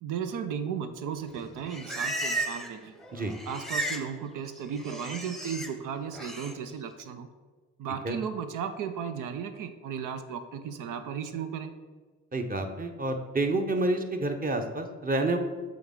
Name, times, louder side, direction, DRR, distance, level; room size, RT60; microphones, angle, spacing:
voice 1, 0.0-2.9 3.5-7.3 7.8-11.7, right 7 dB, 80° right, 9 dB, 0.6 m, -35 dB
Livestock farm animals working animals, 1.4-2.8 3.0-4.1 4.4-5.7 6.1-6.5, right 1 dB, ahead, 0.8 m, -34 dB
voice 2, 12.3-15.4, right 2 dB, 30° right, 5 dB, 0.9 m, -29 dB
7.7 x 3.6 x 3.8 m, 1.4 s
supercardioid pair, 60°, 31 cm